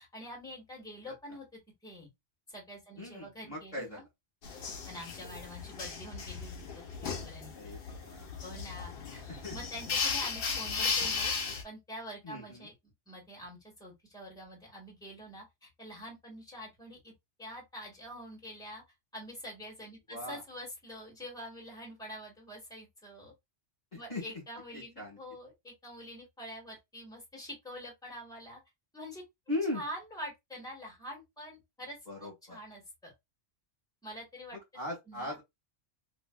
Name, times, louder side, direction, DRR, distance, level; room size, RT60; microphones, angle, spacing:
voice 1, 0.0-1.5 1.8-2.1 2.5-4.0 4.8-6.5 6.7-7.7 8.4-9.2 9.5-11.3 11.6-17.1 17.4-18.8 19.1-23.3 23.9-28.6 28.9-29.2 29.7-33.1 34.0-34.6 35.1-35.4, equal, 5° left, 1.7 m, -46 dB
voice 2, 3.0-4.0 7.5-8.3 9.3-9.5 12.2-12.7 20.1-20.4 24.1-24.2 24.7-25.2 29.5-29.8 32.1-32.6 34.7-35.4, left 1 dB, 40° left, 1.6 m, -38 dB
sound 1, 4.4-11.6, left 5 dB, 60° left, 0.9 m, -36 dB
3.0 x 2.8 x 2.3 m
omnidirectional pair, 1.2 m